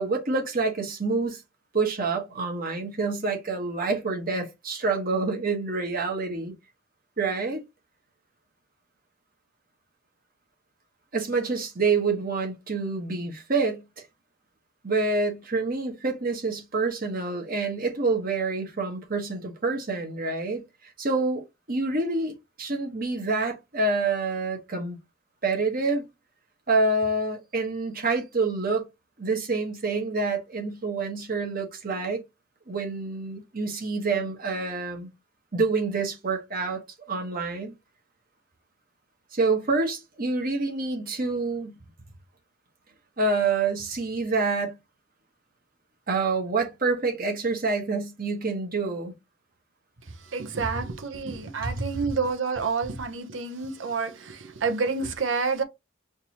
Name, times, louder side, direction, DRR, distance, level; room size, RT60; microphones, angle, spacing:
voice 1, 0.0-1.4 1.7-6.5 7.2-7.6 11.1-13.8 14.8-20.6 21.0-25.0 25.4-26.1 26.7-28.9 29.2-32.2 32.7-35.1 35.5-36.8 37.1-37.7 39.3-41.8 43.2-44.7 46.1-49.1 51.6-51.9, right 3 dB, 45° right, 1.3 m, -27 dB
voice 2, 50.3-55.6, right 4 dB, 70° right, 0.8 m, -29 dB
5.2 x 2.7 x 2.9 m
head